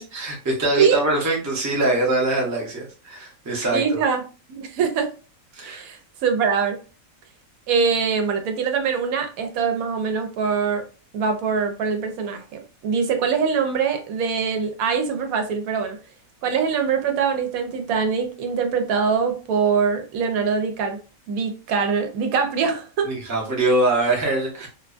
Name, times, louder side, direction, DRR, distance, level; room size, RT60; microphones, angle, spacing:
voice 1, 0.0-4.0 5.5-5.8 23.0-24.7, right 2 dB, 20° right, 0.4 m, -23 dB
voice 2, 3.7-4.2 4.5-5.1 5.6-6.8 7.7-10.8 11.1-16.0 16.4-21.0 21.3-23.1, right 6 dB, 90° right, 1.0 m, -23 dB
2.5 x 2.2 x 2.4 m
omnidirectional pair, 1.4 m